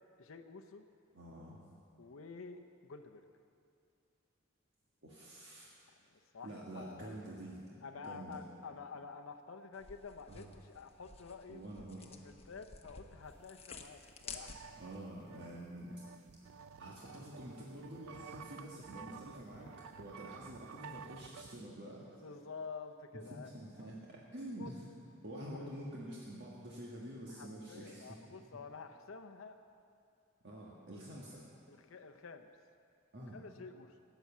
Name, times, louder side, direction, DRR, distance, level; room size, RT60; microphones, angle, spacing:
voice 1, 0.2-0.9 2.0-3.2 6.1-7.1 7.8-11.6 12.1-14.8 22.2-23.9 24.6-24.7 25.5-25.7 27.3-29.6 31.7-32.5 33.3-34.0, left 4 dB, 90° left, 6 dB, 0.7 m, -50 dB
voice 2, 1.1-1.6 5.0-5.7 6.4-8.4 10.3-10.5 11.5-12.1 14.8-16.1 16.8-19.7 20.0-22.2 23.1-24.8 25.2-28.3 30.4-31.4 33.1-33.4, right 1 dB, 60° right, -4 dB, 1.5 m, -47 dB
sound 1, 9.7-15.0, left 5 dB, 30° left, 0.9 m, -52 dB
sound 2, 13.8-13.9 14.1-21.7, right 6 dB, 80° right, 0.4 m, -53 dB
14.0 x 9.2 x 7.3 m, 2.5 s
head